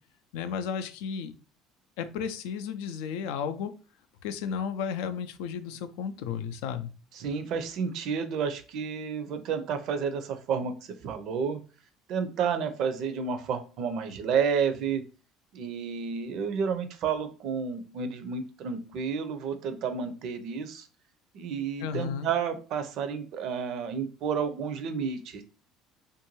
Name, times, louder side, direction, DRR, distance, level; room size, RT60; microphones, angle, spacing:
voice 1, 0.3-1.3 2.0-3.7 4.2-6.9 21.8-22.3, left 7 dB, 80° left, 9 dB, 0.3 m, -33 dB
voice 2, 7.2-11.6 12.1-15.0 15.5-20.9 21.3-25.4, right 6 dB, 65° right, 9 dB, 0.5 m, -31 dB
2.5 x 2.2 x 3.0 m, 0.35 s
supercardioid pair, 80°, 0 cm